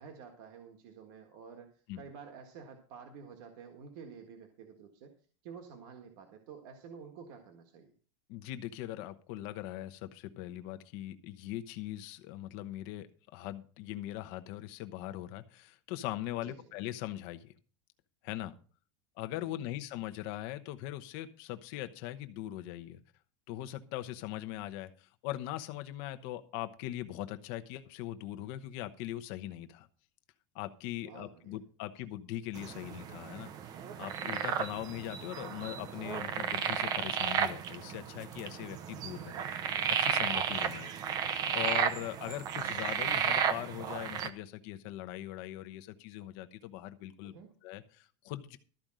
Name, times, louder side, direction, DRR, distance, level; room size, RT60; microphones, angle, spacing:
voice 1, 0.0-5.1 5.4-7.9 16.4-16.6 19.4-19.6 31.0-31.6 39.3-39.7 47.2-47.5, right 6 dB, 50° right, 4 dB, 1.5 m, -50 dB
voice 2, 8.3-17.5 18.2-18.5 19.2-23.0 23.5-29.9 30.5-33.5 34.0-39.5 39.9-40.9 41.5-47.3 47.6-48.6, left 14 dB, 45° left, 9 dB, 0.9 m, -41 dB
sound 1, 32.6-44.3, right 8 dB, 25° right, 0.7 m, -33 dB
13.5 x 5.2 x 7.5 m, 0.40 s
supercardioid pair, 180°, 15 cm